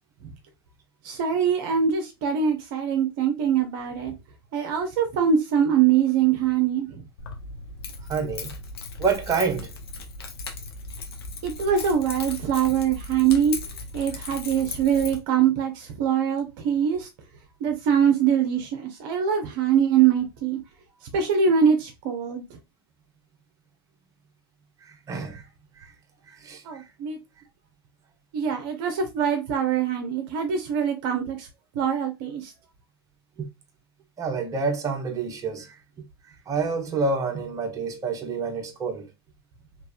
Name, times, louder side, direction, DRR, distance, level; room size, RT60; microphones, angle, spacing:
voice 1, 1.0-4.1 4.5-7.0 11.4-13.6 13.9-17.1 17.6-20.6 21.1-22.4 26.6-27.2 28.3-31.5 31.7-32.5, right 8 dB, 50° right, 0.7 m, -23 dB
Keys jangling, 7.2-15.2, left 3 dB, 70° left, 0.8 m, -37 dB
voice 2, 8.1-8.5 9.0-9.7 24.8-25.4 25.8-25.9 26.3-26.9 33.4-33.5 34.2-35.8 36.3-39.1, right 4 dB, 25° right, 1.0 m, -28 dB
3.3 x 2.9 x 2.5 m
figure-of-eight pair, 90°, 13 cm